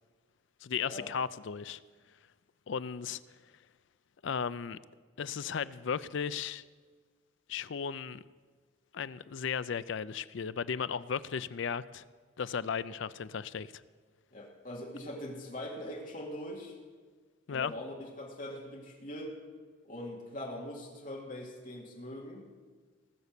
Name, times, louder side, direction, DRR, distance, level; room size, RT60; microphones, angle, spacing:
voice 1, 0.6-1.8 2.7-3.2 4.2-4.8 5.2-6.6 7.5-8.2 8.9-12.0 12.4-13.7 17.5-17.7, left 6 dB, 65° left, 16 dB, 0.4 m, -35 dB
voice 2, 14.3-16.8 17.5-19.4 19.8-22.5, left 1 dB, 40° left, -1 dB, 2.5 m, -42 dB
19.0 x 7.1 x 6.7 m, 1.5 s
head